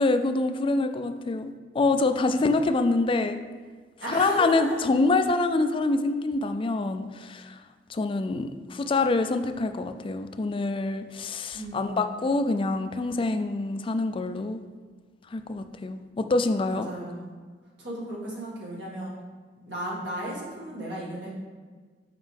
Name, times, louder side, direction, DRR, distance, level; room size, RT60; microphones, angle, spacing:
voice 1, 0.0-3.4 4.1-7.6 7.9-14.6 15.3-16.9, left 3 dB, 30° left, 8 dB, 0.4 m, -26 dB
voice 2, 4.0-4.8 11.5-12.0 16.7-17.3 17.8-19.1 19.6-21.3, right 1 dB, 75° right, -5 dB, 2.0 m, -35 dB
7.3 x 5.0 x 3.4 m, 1.5 s
head